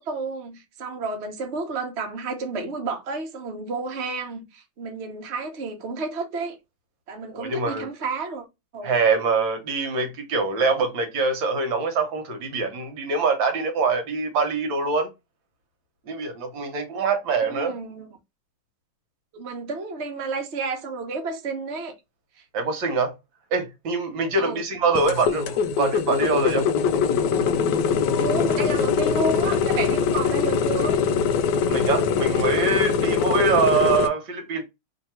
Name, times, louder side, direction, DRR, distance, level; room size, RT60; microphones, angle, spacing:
voice 1, 0.0-6.5 7.1-8.4 8.7-8.9 17.3-18.1 19.3-21.9 24.4-24.6 28.2-31.0 33.4-33.5, right 3 dB, 45° right, 0.9 m, -31 dB
voice 2, 7.3-7.9 8.8-15.1 16.1-17.7 22.5-23.1 23.5-26.7 31.7-34.6, right 4 dB, 65° right, 1.6 m, -24 dB
sound 1, 24.9-34.1, left 6 dB, 75° left, 1.0 m, -22 dB
3.3 x 2.8 x 4.2 m
omnidirectional pair, 2.3 m